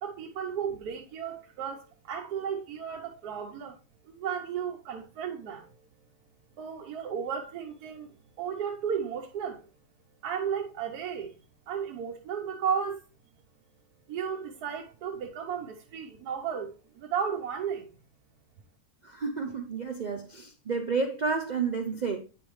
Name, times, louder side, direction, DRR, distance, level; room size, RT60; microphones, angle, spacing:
voice 1, 0.0-3.8 4.1-5.7 6.6-8.1 8.4-9.6 10.2-11.3 11.7-13.0 14.1-17.9, right 7 dB, 90° right, 1.3 m, -34 dB
voice 2, 19.0-22.2, right 5 dB, 65° right, 0.4 m, -31 dB
9.0 x 5.1 x 3.1 m
omnidirectional pair, 1.6 m